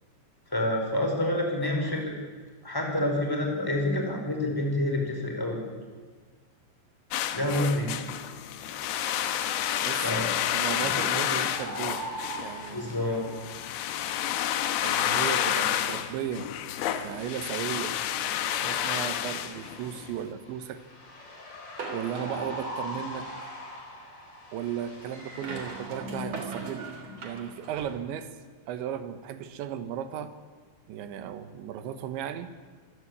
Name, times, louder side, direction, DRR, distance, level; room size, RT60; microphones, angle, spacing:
voice 1, 0.5-2.1 2.6-5.6 7.3-8.0 10.0-10.3 10.8-11.0 12.7-13.2, left 1 dB, 5° left, 1 dB, 4.5 m, -28 dB
voice 2, 1.6-2.1 9.9-12.0 12.4-13.0 14.8-16.5 17.0-18.0 18.3-20.8 21.9-23.3 24.5-26.9 27.2-28.3 28.7-30.3 30.9-32.5, right 9 dB, 85° right, 10 dB, 3.7 m, -36 dB
sound 1, 7.1-20.1, left 11 dB, 75° left, 2.8 m, -30 dB
sound 2, 8.6-25.9, equal, 25° left, 3.7 m, -43 dB
sound 3, 21.8-23.3 25.1-28.0, right 2 dB, 40° right, 3.9 m, -39 dB
26.0 x 16.5 x 8.7 m, 1.6 s
omnidirectional pair, 5.1 m